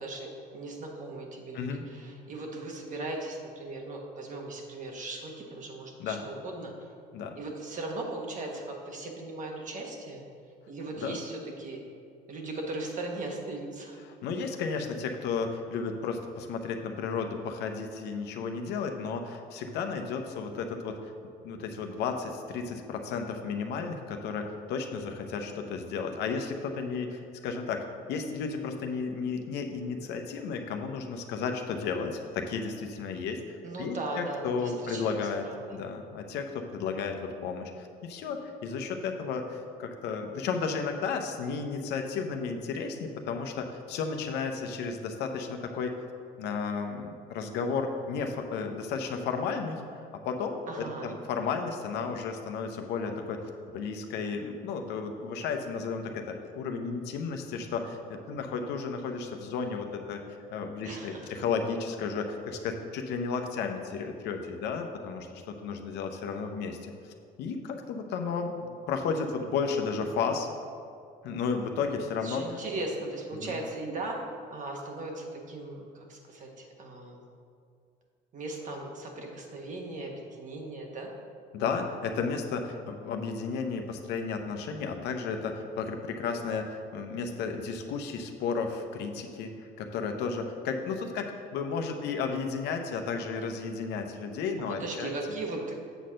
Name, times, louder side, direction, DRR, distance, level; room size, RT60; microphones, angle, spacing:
voice 1, 0.0-6.9 7.3-10.2 10.7-11.8 12.3-14.0 33.6-35.2 35.4-35.8 50.7-51.2 60.8-61.3 72.2-74.2 74.5-77.2 78.3-81.1 94.7-95.7, right 2 dB, 50° right, 1 dB, 1.4 m, -38 dB
voice 2, 14.2-21.1 21.4-35.4 35.7-45.9 46.4-53.4 53.7-60.2 60.5-66.9 67.4-70.5 71.2-72.4 73.3-73.5 81.5-95.1, left 5 dB, 85° left, 5 dB, 0.8 m, -33 dB
8.0 x 4.3 x 6.3 m, 2.3 s
cardioid pair, 110°, 17 cm